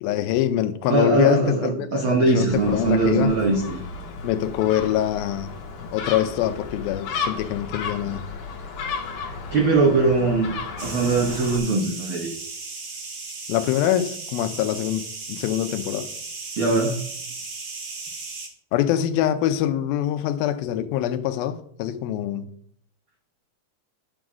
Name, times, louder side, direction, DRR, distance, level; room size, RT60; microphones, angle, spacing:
voice 1, 0.0-3.3 4.2-5.5 5.9-8.2 13.5-16.1 18.7-22.5, left 11 dB, 85° left, 2.5 m, -24 dB
voice 2, 0.9-3.8 9.5-10.5 10.8-12.3 16.6-17.0, right 3 dB, 90° right, 1.1 m, -21 dB
Gull seagull, 2.5-11.6, left 4 dB, 65° left, 2.3 m, -34 dB
sound 1, 10.8-18.5, right 3 dB, 60° right, 1.2 m, -36 dB
10.0 x 3.8 x 6.1 m
omnidirectional pair, 4.2 m